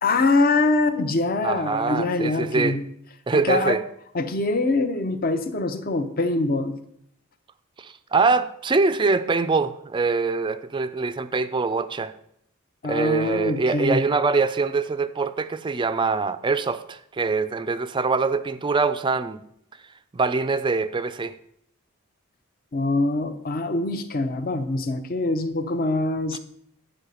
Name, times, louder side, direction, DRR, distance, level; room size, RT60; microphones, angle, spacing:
voice 1, 0.0-2.8 3.3-3.8 4.1-6.8 12.8-14.0 22.7-26.4, left 2 dB, 40° left, 0.7 m, -24 dB
voice 2, 1.4-2.8 3.3-3.8 7.8-12.1 12.8-19.4 20.1-21.4 26.3-26.4, right 4 dB, 20° right, 0.4 m, -24 dB
9.0 x 4.1 x 6.9 m
head